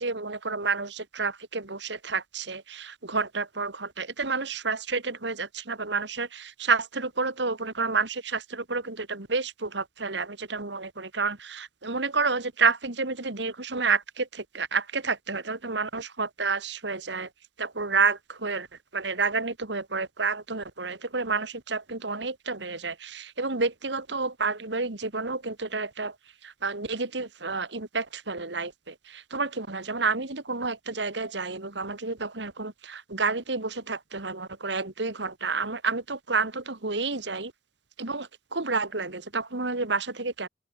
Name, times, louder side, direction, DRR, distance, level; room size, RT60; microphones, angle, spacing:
voice 1, 0.0-17.3 17.6-18.7 18.9-26.2 26.4-37.5 38.0-40.5, right 4 dB, 65° right, 2.3 m, -30 dB
open air
head